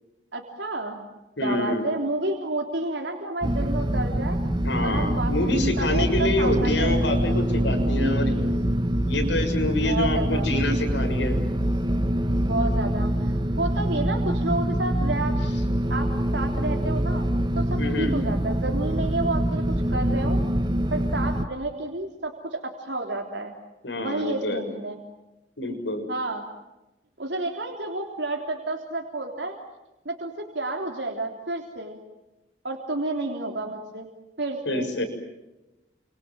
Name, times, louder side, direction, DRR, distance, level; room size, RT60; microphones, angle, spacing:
voice 1, 0.3-1.1 1.4-4.4 4.8-7.0 7.9-8.6 9.8-10.5 12.4-15.3 15.9-17.2 17.5-20.4 20.9-23.5 24.0-25.0 26.1-26.4 27.2-29.6 30.0-32.0 32.6-34.1 34.4-34.9, right 2 dB, 80° right, 1 dB, 3.5 m, -30 dB
voice 2, 1.4-1.9 4.6-8.3 9.0-11.4 17.8-18.2 23.8-24.6 25.6-26.1 34.6-35.0, left 1 dB, 85° left, 5 dB, 6.9 m, -26 dB
sound 1, 3.4-21.5, right 1 dB, 25° right, 1.3 m, -25 dB
29.5 x 26.0 x 7.7 m, 0.99 s
head